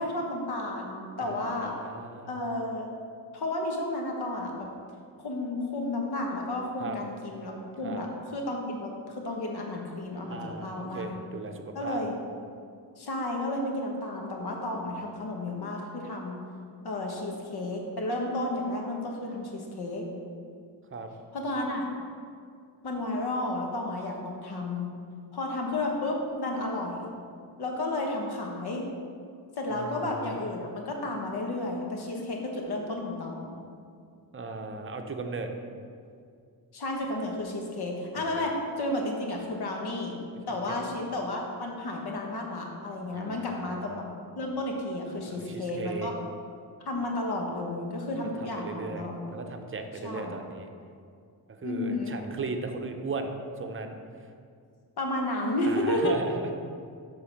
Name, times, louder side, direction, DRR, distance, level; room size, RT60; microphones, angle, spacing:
voice 1, 0.0-1.7 2.3-2.9 3.3-4.7 5.2-11.1 11.7-12.2 13.0-16.4 16.8-20.1 21.3-21.9 22.8-24.9 25.3-27.0 27.6-28.9 29.6-33.6 36.7-40.1 40.5-44.0 44.4-46.1 46.8-49.5 50.0-50.4 51.6-52.2 55.0-56.1, left 1 dB, 75° left, 0 dB, 1.3 m, -32 dB
voice 2, 1.2-2.3 6.8-7.0 7.8-8.0 10.3-12.0 20.9-21.1 29.8-30.3 34.3-35.5 38.2-38.5 40.5-40.8 43.1-44.0 45.3-46.1 48.4-50.7 51.5-54.0 55.7-56.5, right 3 dB, 30° right, 5 dB, 0.7 m, -37 dB
6.9 x 3.9 x 5.8 m, 2.3 s
cardioid pair, 90°, 39 cm